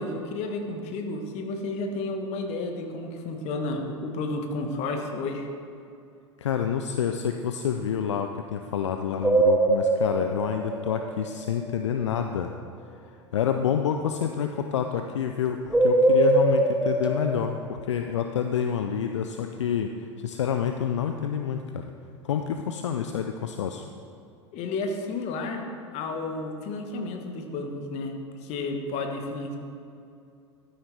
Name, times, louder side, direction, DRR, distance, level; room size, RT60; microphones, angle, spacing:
voice 1, 0.0-5.5 24.5-25.7 25.9-28.1 28.4-29.6, left 2 dB, 45° left, 4 dB, 1.4 m, -32 dB
voice 2, 6.4-12.5 13.3-21.8 22.2-23.8, left 8 dB, 70° left, 6 dB, 0.5 m, -28 dB
sound 1, 9.2-11.7 15.7-17.3, right 2 dB, 5° right, 0.9 m, -22 dB
12.5 x 9.4 x 3.4 m, 2.5 s
figure-of-eight pair, 80°, 16 cm